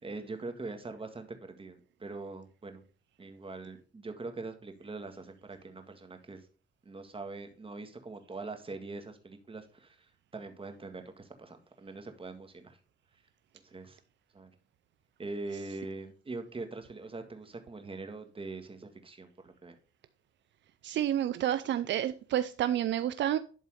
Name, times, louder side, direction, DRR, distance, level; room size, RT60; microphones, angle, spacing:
voice 1, 0.0-2.8 3.2-6.5 6.9-10.1 10.3-12.8 13.6-14.0 14.3-14.5 15.2-19.8, right 3 dB, 25° right, 1.7 m, -43 dB
voice 2, 20.8-23.4, right 11 dB, 65° right, 0.5 m, -29 dB
11.5 x 4.0 x 5.0 m
cardioid pair, 90°, 20 cm